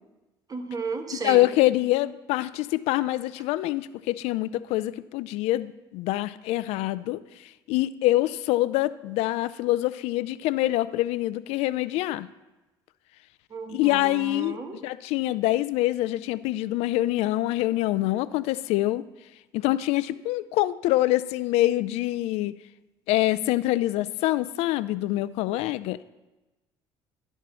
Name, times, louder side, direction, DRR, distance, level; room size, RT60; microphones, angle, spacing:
voice 1, 0.5-1.4 13.5-14.8, right 4 dB, 35° right, 6 dB, 1.3 m, -34 dB
voice 2, 1.1-7.2 7.7-12.3 13.7-19.0 19.5-22.5 23.1-26.1, left 16 dB, 75° left, 16 dB, 0.4 m, -25 dB
11.0 x 4.5 x 6.1 m, 1.1 s
supercardioid pair, 75°, 11 cm